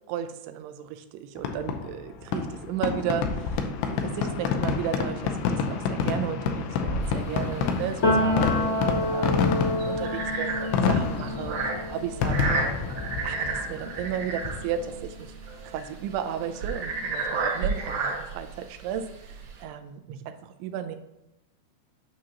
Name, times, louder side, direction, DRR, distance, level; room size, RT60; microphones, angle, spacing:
voice 1, 0.1-12.8 13.2-15.4 15.6-21.0, right 9 dB, 85° right, 8 dB, 2.4 m, -34 dB
Fireworks, 1.4-15.0, left 5 dB, 80° left, 2.7 m, -29 dB
sound 1, 7.0-19.6, right 4 dB, 60° right, 2.2 m, -33 dB
Piano, 8.0-15.6 16.0-17.5, left 1 dB, 50° left, 1.0 m, -30 dB
8.7 x 6.0 x 2.8 m, 0.85 s
omnidirectional pair, 5.0 m